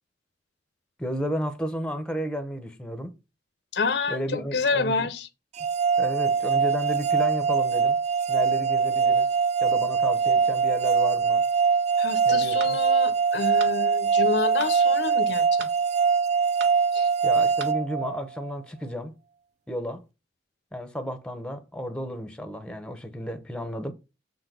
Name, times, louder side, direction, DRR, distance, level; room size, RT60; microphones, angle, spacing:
voice 1, 1.0-3.1 4.1-5.1 6.0-8.0 8.3-9.3 9.6-11.4 12.2-12.8 17.2-19.1 19.7-20.0 20.7-23.9, equal, 5° left, 0.9 m, -32 dB
voice 2, 3.7-5.3 12.0-15.7 16.9-17.1, left 4 dB, 70° left, 0.9 m, -28 dB
sound 1, 5.6-18.5, right 5 dB, 40° right, 0.3 m, -23 dB
sound 2, 12.6-12.8 13.6-13.8 14.6-14.8 15.6-15.8 16.6-16.8 17.6-17.8, right 5 dB, 70° right, 1.1 m, -38 dB
7.3 x 3.9 x 6.0 m
head